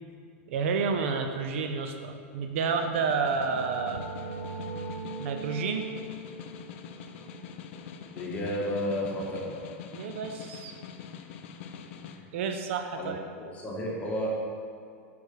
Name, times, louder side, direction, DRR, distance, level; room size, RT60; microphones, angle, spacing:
voice 1, 0.5-4.0 5.2-5.8 9.9-10.7 12.3-13.2, right 5 dB, 70° right, 6 dB, 0.6 m, -30 dB
Snare drum, 2.5-12.2, left 7 dB, 65° left, 0.5 m, -45 dB
sound 1, 3.0-8.5, right 3 dB, 50° right, 0.9 m, -41 dB
voice 2, 8.2-9.5 12.1-12.2 13.0-13.1 13.5-14.3, equal, 20° left, -4 dB, 1.7 m, -32 dB
6.2 x 5.1 x 5.0 m, 2.2 s
hypercardioid pair, 115°, 7 cm